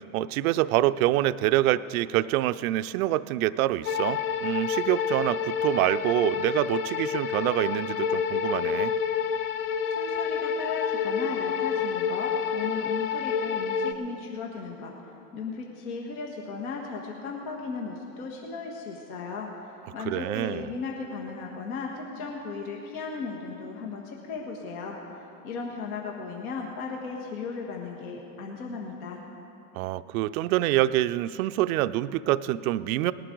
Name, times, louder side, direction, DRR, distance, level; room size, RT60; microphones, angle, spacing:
voice 1, 0.0-8.9 20.1-20.7 29.7-33.1, right 15 dB, 65° right, 14 dB, 0.5 m, -26 dB
sound 1, 3.8-13.9, left 7 dB, 30° left, 0.4 m, -28 dB
voice 2, 9.9-14.9 15.3-29.2, left 4 dB, 65° left, 0 dB, 1.7 m, -36 dB
19.0 x 11.5 x 3.9 m, 2.8 s
hypercardioid pair, 110°, 46 cm